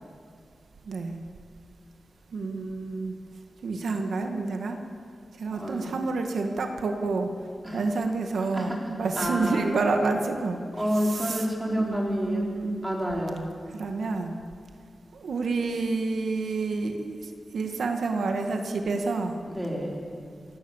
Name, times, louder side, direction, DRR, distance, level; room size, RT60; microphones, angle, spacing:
voice 1, 2.3-3.1 3.6-4.8 5.4-7.3 7.7-10.6 11.0-13.0 13.7-14.3 15.1-19.4, right 3 dB, 90° right, 4 dB, 2.0 m, -29 dB
voice 2, 5.5-5.9 7.6-7.8 8.5-8.8 9.2-9.6 10.8-12.5 12.8-13.5 19.5-20.0, equal, 10° right, -2 dB, 4.4 m, -29 dB
28.0 x 17.5 x 7.4 m, 2.2 s
wide cardioid pair, 150°, 0 cm